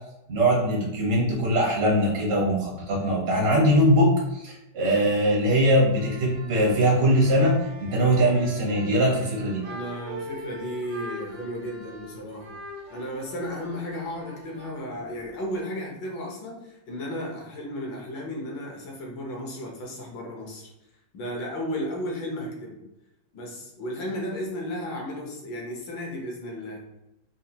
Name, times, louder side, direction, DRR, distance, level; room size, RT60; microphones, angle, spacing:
voice 1, 0.3-9.6, equal, 60° right, -3 dB, 0.6 m, -21 dB
sound 1, 5.8-15.6, right 1 dB, 80° right, 1.4 m, -43 dB
voice 2, 9.6-12.6 12.9-20.7 21.1-22.8 23.3-26.8, equal, 75° left, -1 dB, 1.5 m, -34 dB
4.2 x 2.1 x 2.7 m, 0.88 s
omnidirectional pair, 2.0 m